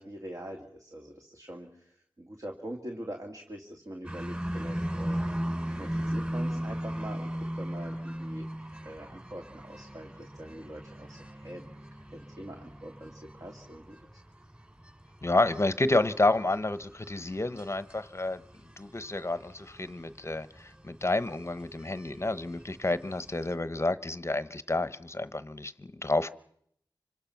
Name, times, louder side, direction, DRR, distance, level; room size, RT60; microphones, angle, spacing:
voice 1, 0.0-5.2 5.7-8.5 8.8-11.7 12.1-14.0, right 1 dB, 40° right, 2 dB, 2.3 m, -43 dB
sound 1, 4.0-23.5, equal, 20° right, 7.2 m, -38 dB
voice 2, 15.2-18.4 18.8-26.3, left 2 dB, 30° left, 14 dB, 0.9 m, -29 dB
26.0 x 25.5 x 5.9 m, 0.71 s
wide cardioid pair, 75°, 9 cm